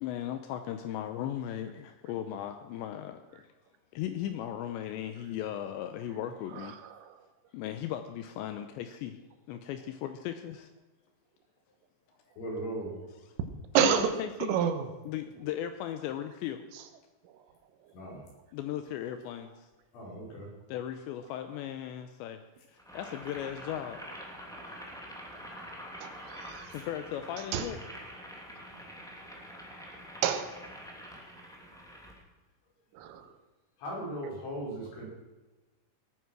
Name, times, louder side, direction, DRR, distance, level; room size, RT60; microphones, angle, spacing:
voice 1, 0.0-3.5 3.9-6.8 7.5-9.2 9.5-10.7 13.8-14.6 15.1-16.6 18.5-19.7 20.7-22.4 22.7-24.0 26.7-27.8, left 11 dB, 85° left, 8 dB, 2.7 m, -37 dB
voice 2, 6.6-7.2 13.8-14.1 14.5-14.9 26.0-26.8 27.5-27.7 30.2-30.5 33.0-33.3, right 9 dB, 85° right, 8 dB, 3.7 m, -29 dB
voice 3, 12.4-13.0 17.9-18.2 19.9-20.5 33.8-35.1, right 1 dB, 65° left, -4 dB, 7.4 m, -38 dB
Boiling, 22.8-32.2, equal, 5° left, 0.4 m, -46 dB
18.5 x 9.4 x 6.1 m, 1.2 s
omnidirectional pair, 5.8 m